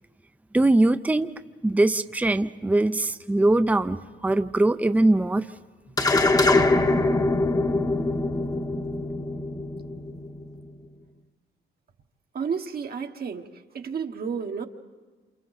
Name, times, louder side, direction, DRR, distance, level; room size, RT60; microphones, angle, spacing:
voice 1, 0.5-1.3 1.6-5.5, right 2 dB, 5° right, 11 dB, 0.6 m, -21 dB
sound 1, 6.0-10.6, left 2 dB, 20° left, 1.0 m, -23 dB
voice 2, 12.3-13.4 13.7-14.7, right 6 dB, 50° right, 4 dB, 1.2 m, -31 dB
28.0 x 28.0 x 4.1 m, 1.4 s
cardioid pair, 90°, 20 cm